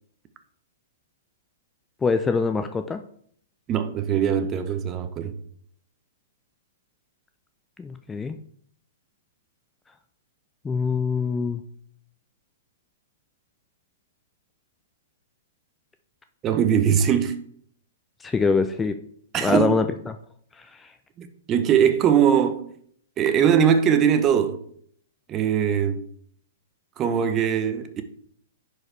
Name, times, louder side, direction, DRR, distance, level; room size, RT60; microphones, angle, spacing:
voice 1, 2.0-3.0 7.8-8.4 10.6-11.6 18.2-19.0 19.4-20.1 20.6-20.7, left 4 dB, 10° left, 0.4 m, -24 dB
voice 2, 3.7-5.3 16.4-17.4 19.3-19.7 21.2-22.7 23.2-24.6 25.3-26.1 27.0-28.0, right 8 dB, 25° right, 0.8 m, -21 dB
10.5 x 4.7 x 3.3 m
hypercardioid pair, 130°, 0 cm